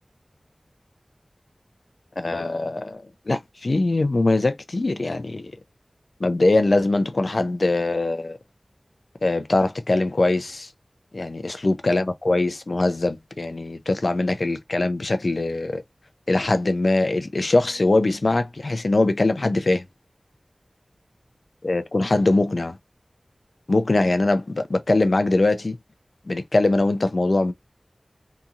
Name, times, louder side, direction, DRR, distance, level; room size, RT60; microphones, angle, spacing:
voice 1, 2.2-5.5 6.2-8.4 9.2-10.7 11.1-15.8 16.3-19.8 21.6-22.8 23.7-25.8 26.3-27.5, left 2 dB, 65° left, 0.4 m, -22 dB
2.8 x 2.6 x 2.4 m
wide cardioid pair, 50°, 0 cm